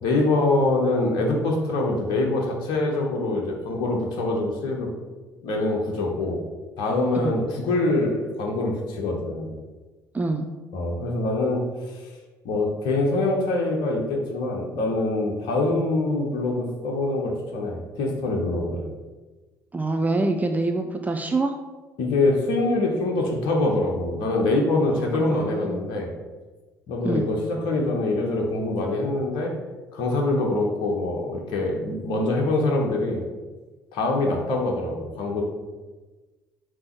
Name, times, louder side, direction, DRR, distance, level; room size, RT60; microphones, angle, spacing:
voice 1, 0.0-4.9 5.4-6.4 6.8-9.5 10.7-12.1 12.4-18.8 22.0-26.1 26.9-29.5 29.9-33.2 33.9-35.4, left 2 dB, 60° left, 1 dB, 1.3 m, -24 dB
voice 2, 10.1-10.5 19.7-21.5 25.0-25.8 27.0-27.3, right 2 dB, 15° right, 4 dB, 0.6 m, -25 dB
7.5 x 3.1 x 5.9 m, 1.2 s
figure-of-eight pair, 55°, 9 cm